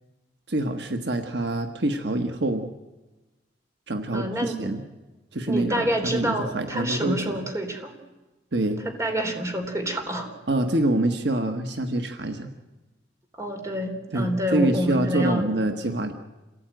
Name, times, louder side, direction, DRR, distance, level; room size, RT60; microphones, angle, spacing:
voice 1, 0.5-2.7 3.9-4.8 5.3-7.5 8.5-8.8 10.5-12.5 14.1-16.1, right 1 dB, 70° right, 6 dB, 1.5 m, -26 dB
voice 2, 4.1-4.7 5.5-7.9 9.0-10.4 13.3-15.4, equal, 15° right, 4 dB, 3.6 m, -27 dB
27.0 x 17.5 x 9.1 m, 1.1 s
head